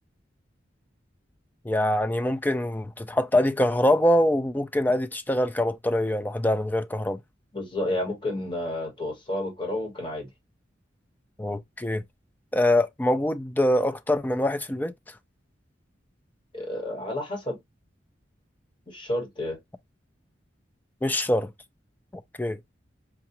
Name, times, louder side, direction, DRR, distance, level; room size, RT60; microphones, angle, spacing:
voice 1, 1.6-7.2 11.4-12.0 12.5-15.1 21.0-21.5 22.1-22.6, left 1 dB, 10° left, 0.4 m, -24 dB
voice 2, 7.5-10.3 16.5-17.6 18.9-19.6, left 1 dB, 25° left, 1.3 m, -30 dB
4.7 x 2.4 x 2.8 m
head